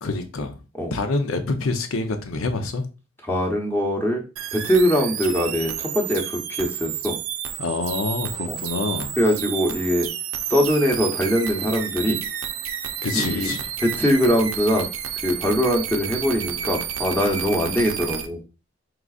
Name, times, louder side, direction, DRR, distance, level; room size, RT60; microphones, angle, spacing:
voice 1, 0.0-0.6 0.9-2.8 7.6-9.2 13.0-13.6, left 3 dB, 80° left, 0.7 m, -26 dB
voice 2, 3.2-4.2 4.5-7.2 8.5-8.6 9.2-10.1 10.5-12.2 13.1-13.5 13.8-14.9 15.2-18.4, equal, 10° left, 0.9 m, -22 dB
sound 1, 4.4-18.3, right 9 dB, 75° right, 0.5 m, -31 dB
4.8 x 3.8 x 2.4 m
head